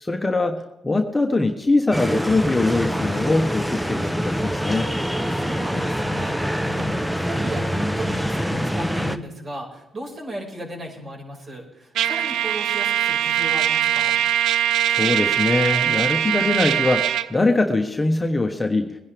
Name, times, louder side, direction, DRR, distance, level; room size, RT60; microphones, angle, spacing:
voice 1, 0.0-4.9 14.9-18.9, left 2 dB, 15° left, 3 dB, 1.3 m, -22 dB
sound 1, 1.9-9.2, equal, 5° right, 0.9 m, -25 dB
voice 2, 4.9-14.2, right 1 dB, 35° right, 0 dB, 5.7 m, -35 dB
Trumpet, 12.0-17.3, right 11 dB, 80° right, 0.5 m, -21 dB
21.5 x 10.5 x 3.5 m, 0.94 s
cardioid pair, 90°, 0 cm